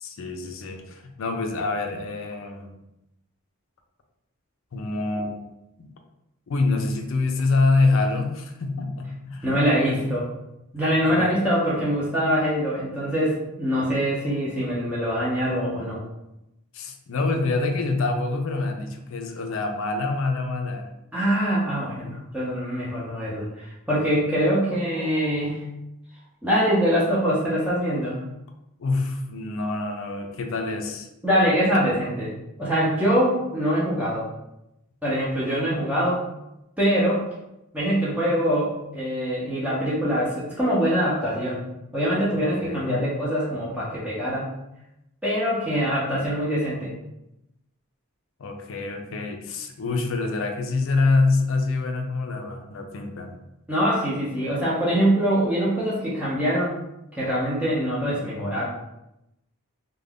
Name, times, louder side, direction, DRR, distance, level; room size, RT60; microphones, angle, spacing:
voice 1, 0.0-2.8 4.7-5.5 5.8-5.9 6.5-9.5 9.8-10.0 10.8-11.4 16.7-20.9 28.8-31.1 42.3-43.1 48.4-53.4, left 3 dB, 60° left, 4 dB, 0.4 m, -26 dB
voice 2, 9.4-10.3 10.7-16.0 21.1-25.7 26.4-28.2 31.2-32.3 32.6-34.2 35.0-36.2 36.8-37.2 37.7-41.6 41.9-44.5 45.2-46.9 53.7-56.8 57.1-58.6, equal, 5° right, -8 dB, 0.6 m, -24 dB
2.4 x 2.2 x 3.4 m, 0.88 s
head